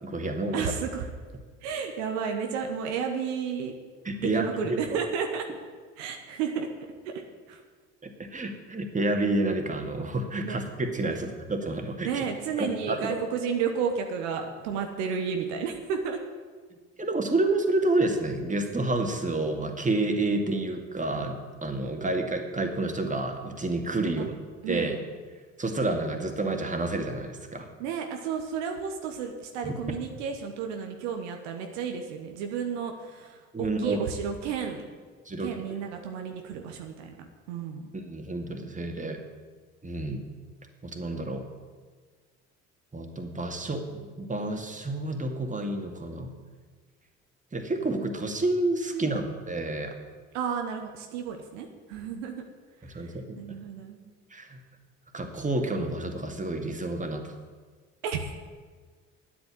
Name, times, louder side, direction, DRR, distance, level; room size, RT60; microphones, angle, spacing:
voice 1, 0.0-0.7 4.0-4.5 8.0-12.2 12.6-13.2 17.0-24.3 24.7-25.0 25.6-27.7 29.6-29.7 33.5-34.0 35.3-35.5 37.9-39.2 39.8-40.2 40.8-41.5 42.9-46.3 47.5-49.9 52.8-53.4 54.3-54.6 55.1-57.3, right 2 dB, 20° right, 4 dB, 2.3 m, -29 dB
voice 2, 0.5-1.1 1.6-3.7 4.2-5.5 6.0-6.7 7.0-7.2 7.5-7.6 10.4-10.6 11.1-11.2 12.0-16.2 24.2-24.3 24.6-25.0 27.8-34.8 35.4-37.9 48.9-49.1 50.3-52.4 52.9-54.0 58.0-58.3, right 6 dB, 80° right, 4 dB, 1.2 m, -32 dB
9.7 x 8.4 x 9.5 m, 1.5 s
hypercardioid pair, 50°, 36 cm